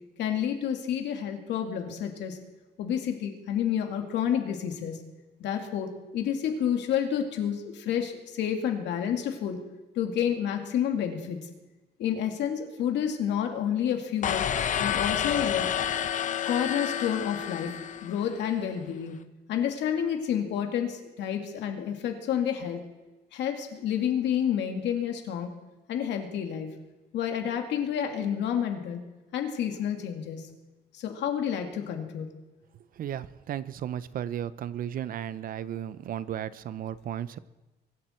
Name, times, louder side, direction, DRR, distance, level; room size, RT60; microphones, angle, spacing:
voice 1, 0.2-2.4 2.8-5.0 5.4-9.6 10.0-11.4 12.0-14.5 14.8-15.7 16.4-17.7 18.0-19.2 19.5-22.8 23.3-25.5 25.9-26.7 27.1-29.0 29.3-30.4 30.9-32.3, left 9 dB, 85° left, 4 dB, 2.4 m, -29 dB
sound 1, 14.2-18.4, left 9 dB, 45° left, 0.8 m, -29 dB
voice 2, 33.0-37.4, right 10 dB, 55° right, 16 dB, 0.6 m, -34 dB
23.5 x 12.0 x 4.5 m, 1.1 s
cardioid pair, 155°, 18 cm